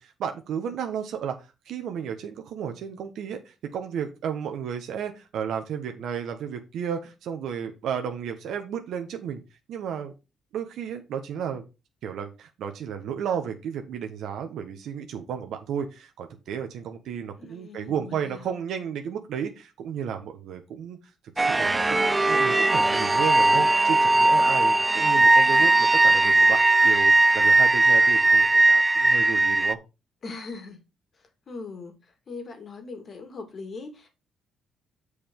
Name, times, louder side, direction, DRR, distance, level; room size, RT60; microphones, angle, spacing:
voice 1, 0.0-1.4 1.7-9.4 9.7-10.1 10.5-11.6 12.0-21.0 21.4-29.8, right 8 dB, 75° right, 1.3 m, -33 dB
voice 2, 17.4-18.4 30.2-30.8 31.2-34.1, left 3 dB, 45° left, 2.3 m, -40 dB
sound 1, 21.4-29.7, right 2 dB, 20° right, 0.3 m, -19 dB
6.9 x 4.9 x 5.4 m
cardioid pair, 90°, 0 cm